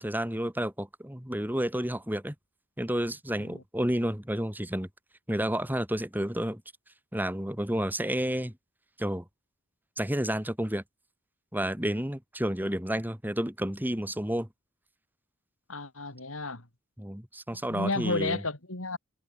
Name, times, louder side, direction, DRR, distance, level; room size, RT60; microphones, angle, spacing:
voice 1, 0.0-2.3 2.8-4.9 5.3-6.6 7.1-8.5 9.0-9.2 10.0-10.8 11.5-14.5 17.0-18.4, right 1 dB, 10° right, 3.0 m, -30 dB
voice 2, 15.7-16.6 17.5-19.0, left 2 dB, 85° left, 4.6 m, -32 dB
head